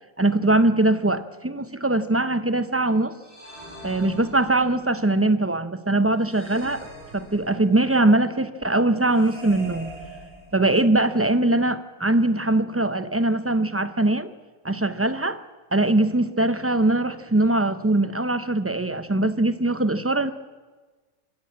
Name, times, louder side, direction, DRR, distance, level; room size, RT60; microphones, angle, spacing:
voice 1, 0.2-3.2 3.8-6.9 7.1-9.9 10.5-14.3 14.6-15.4 15.7-20.3, right 2 dB, 15° right, 12 dB, 0.4 m, -21 dB
sound 1, 3.2-4.9 6.2-7.8 9.1-10.9, equal, 40° right, 7.7 m, -43 dB
25.0 x 13.5 x 8.6 m, 1.3 s
omnidirectional pair, 1.4 m